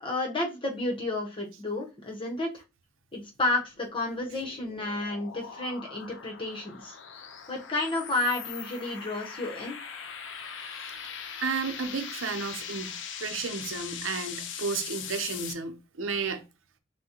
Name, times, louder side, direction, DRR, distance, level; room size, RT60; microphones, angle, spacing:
voice 1, 0.0-2.6 3.1-7.0 7.5-9.8, left 2 dB, 25° left, 1.0 m, -31 dB
sound 1, 3.5-15.5, left 7 dB, 65° left, 0.5 m, -41 dB
voice 2, 11.4-12.9 13.2-16.4, right 5 dB, 80° right, 0.7 m, -32 dB
6.1 x 2.2 x 2.9 m
head